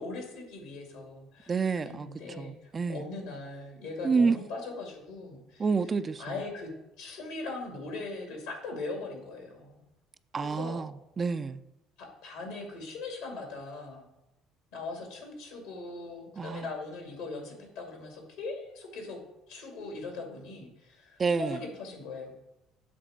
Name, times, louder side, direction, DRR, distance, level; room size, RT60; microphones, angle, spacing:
voice 1, 0.0-5.7 6.2-6.7 7.0-9.8 10.4-10.8 12.0-14.1 14.7-19.2 19.5-22.3, left 3 dB, 75° left, 2 dB, 2.3 m, -40 dB
voice 2, 1.5-2.1 2.4-3.0 4.0-4.4 5.6-6.2 10.3-11.6 16.4-16.7 21.2-21.6, right 5 dB, 35° right, 12 dB, 0.4 m, -28 dB
7.8 x 3.5 x 6.5 m, 0.90 s
hypercardioid pair, 55°, 0 cm